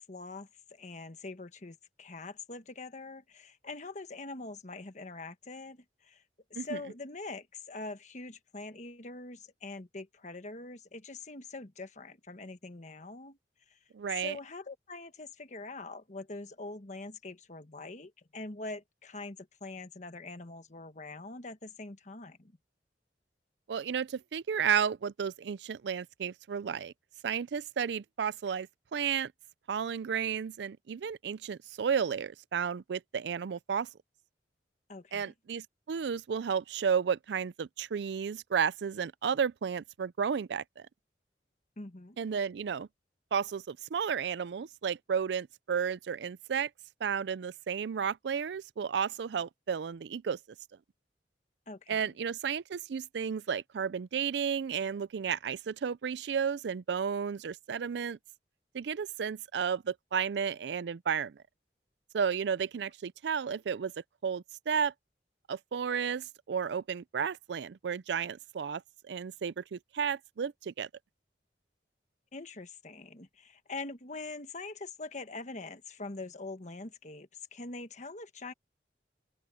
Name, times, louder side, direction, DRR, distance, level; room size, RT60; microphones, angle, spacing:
voice 1, 0.0-6.2 6.5-13.4 13.7-13.8 14.2-22.5 34.9-35.3 41.8-42.2 51.7-52.1 72.3-78.5, left 3 dB, 40° left, 1.3 m, -44 dB
voice 2, 13.9-14.4 23.7-26.9 27.2-29.3 29.7-33.9 35.1-40.8 42.2-42.9 43.3-46.7 47.0-50.4 51.9-58.2 58.7-61.4 62.1-63.9 64.2-64.9 65.5-70.9, right 7 dB, 75° right, 0.4 m, -33 dB
head